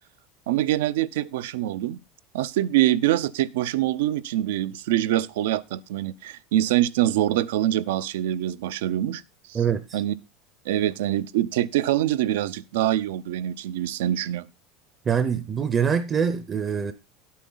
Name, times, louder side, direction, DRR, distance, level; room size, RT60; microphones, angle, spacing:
voice 1, 0.5-2.0 2.3-9.2 9.5-9.6 9.9-10.1 10.7-14.5, right 13 dB, 90° right, 0.5 m, -24 dB
voice 2, 9.5-10.0 15.1-16.9, right 7 dB, 20° right, 0.5 m, -24 dB
10.0 x 8.4 x 3.8 m
supercardioid pair, 155°, 0 cm